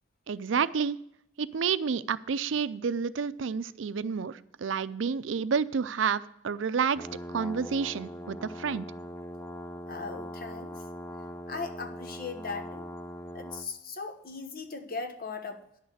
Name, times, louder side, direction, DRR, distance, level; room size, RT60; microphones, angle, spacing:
voice 1, 0.3-1.0 1.4-8.9, right 6 dB, 90° right, 15 dB, 0.5 m, -30 dB
sound 1, 7.0-13.7, equal, 15° left, 0.6 m, -41 dB
voice 2, 9.9-10.7 11.5-12.9 13.3-15.6, left 4 dB, 50° left, 6 dB, 1.2 m, -38 dB
11.0 x 6.4 x 6.7 m, 0.75 s
head